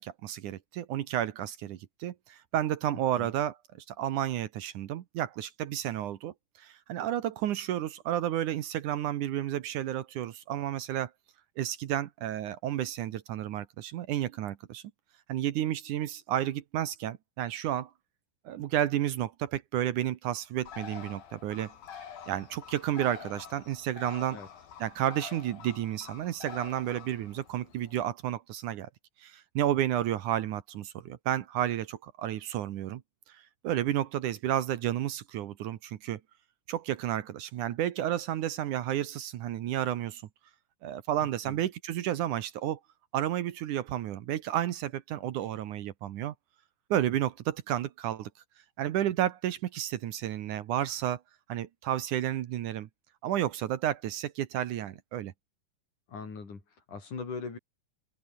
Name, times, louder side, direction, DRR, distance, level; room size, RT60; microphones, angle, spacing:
voice 1, 0.0-3.6 3.9-11.1 11.6-14.8 15.3-17.9 18.5-21.7 22.3-24.4 24.8-28.9 29.2-33.0 33.3-36.2 36.7-40.2 40.8-42.8 43.1-46.3 46.9-48.3 48.8-51.2 51.5-52.9 53.2-55.3, right 12 dB, 70° right, 2.5 m, -31 dB
Bird, 20.6-28.1, left 8 dB, 90° left, 4.6 m, -47 dB
voice 2, 41.2-41.6 56.1-57.6, left 5 dB, 60° left, 6.5 m, -41 dB
omnidirectional pair, 3.9 m